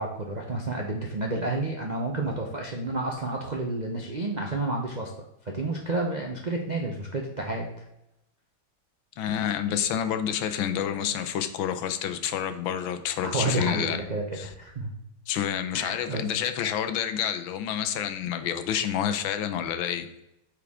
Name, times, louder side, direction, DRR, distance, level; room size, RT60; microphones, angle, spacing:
voice 1, 0.0-5.1 5.4-7.8 13.2-14.9 15.7-16.2, right 2 dB, 90° right, 0 dB, 0.3 m, -30 dB
voice 2, 9.2-14.0 14.3-14.5 15.3-20.1, left 9 dB, 75° left, 9 dB, 1.4 m, -28 dB
8.4 x 4.6 x 3.6 m, 0.87 s
omnidirectional pair, 2.3 m